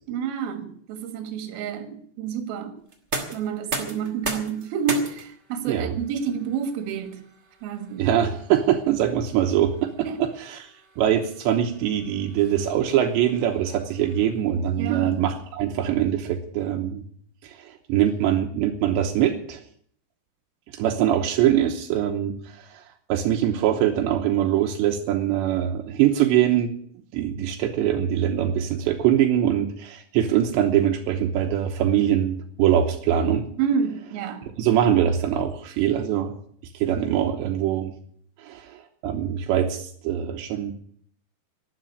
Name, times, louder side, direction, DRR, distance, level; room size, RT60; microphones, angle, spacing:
voice 1, 0.1-2.7 3.3-7.2 7.6-8.1 10.0-10.2 14.8-15.2 33.6-34.4, right 7 dB, 65° right, 3.3 m, -29 dB
sound 1, 2.9-14.7, right 3 dB, 45° right, 0.8 m, -38 dB
voice 2, 5.7-6.0 8.0-17.0 17.4-19.6 20.7-22.8 23.1-26.7 27.1-33.5 34.6-36.3 36.6-37.9 38.4-40.7, right 10 dB, 80° right, 3.2 m, -23 dB
12.0 x 10.5 x 9.8 m
omnidirectional pair, 5.1 m